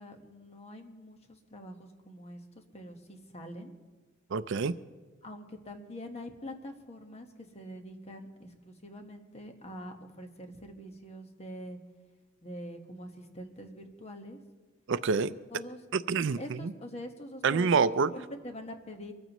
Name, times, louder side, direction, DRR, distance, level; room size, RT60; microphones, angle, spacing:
voice 1, 0.0-3.7 5.2-11.8 12.4-14.4 15.5-15.8 16.4-17.8 18.1-19.1, equal, 30° left, 4 dB, 1.4 m, -45 dB
voice 2, 4.3-4.7 14.9-15.3 15.9-16.7 17.4-18.1, right 5 dB, 60° right, 14 dB, 0.4 m, -27 dB
24.5 x 14.5 x 3.1 m, 1.3 s
head